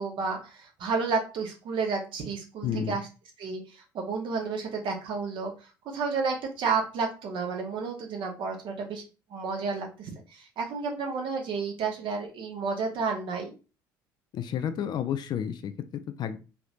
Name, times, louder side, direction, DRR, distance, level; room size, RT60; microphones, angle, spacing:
voice 1, 0.0-3.1 3.4-5.5 5.9-9.0 9.3-13.5, right 4 dB, 50° right, 2 dB, 0.9 m, -31 dB
voice 2, 2.6-3.0 14.3-15.7 16.2-16.4, left 9 dB, 40° left, 10 dB, 0.4 m, -30 dB
3.2 x 2.9 x 2.5 m, 0.32 s
figure-of-eight pair, 55°, 11 cm